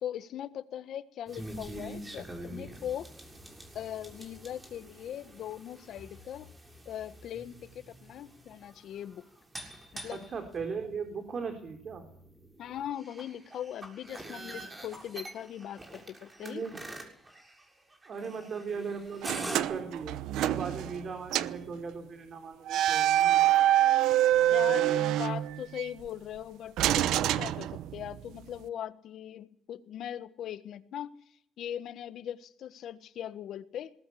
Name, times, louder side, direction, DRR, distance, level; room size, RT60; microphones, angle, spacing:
voice 1, 0.0-3.1 3.7-6.5 6.8-9.2 9.9-10.3 12.6-16.6 24.5-31.1 31.6-33.9, left 10 dB, 75° left, 12 dB, 1.4 m, -40 dB
sound 1, 1.3-19.6, right 1 dB, 20° right, 7.0 m, -46 dB
voice 2, 10.1-12.0 16.4-16.8 18.1-20.2 20.4-23.4, right 5 dB, 50° right, 6 dB, 3.8 m, -38 dB
sound 2, 19.2-21.1 21.3-21.6 22.7-25.9 26.8-28.2, right 13 dB, 90° right, 0.8 m, -26 dB
20.5 x 18.0 x 8.6 m, 0.67 s
cardioid pair, 90°, 0 cm